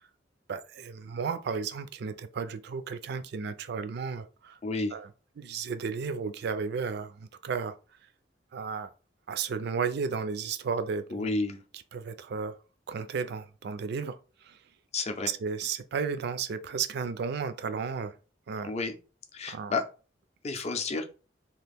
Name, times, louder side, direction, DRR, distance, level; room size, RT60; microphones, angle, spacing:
voice 1, 0.5-4.6 4.9-5.1 5.4-7.7 8.5-8.9 9.3-11.3 11.9-12.5 12.9-14.2 14.4-14.6 15.3-18.2 18.5-18.8 19.5-19.7, right 5 dB, 60° right, 0.4 m, -33 dB
voice 2, 4.6-4.9 11.1-11.6 14.9-15.3 18.6-18.9 19.3-19.8 20.4-21.0, left 3 dB, 35° left, 0.5 m, -31 dB
2.9 x 2.4 x 3.4 m
head